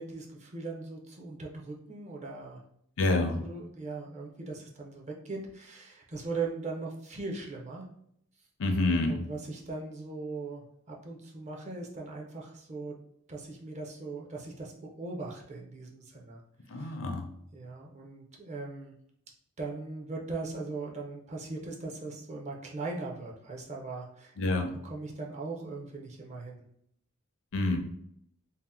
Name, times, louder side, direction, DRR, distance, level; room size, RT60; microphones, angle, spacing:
voice 1, 0.0-2.6 3.4-7.9 8.9-13.0 13.3-16.4 16.7-16.9 17.5-18.9 19.6-24.3 24.8-26.6, right 3 dB, 35° right, -1 dB, 0.5 m, -39 dB
voice 2, 3.0-3.4 8.6-9.2 16.7-17.2 24.4-24.7 27.5-27.8, left 2 dB, 65° left, 4 dB, 0.5 m, -27 dB
2.8 x 2.0 x 3.4 m, 0.71 s
head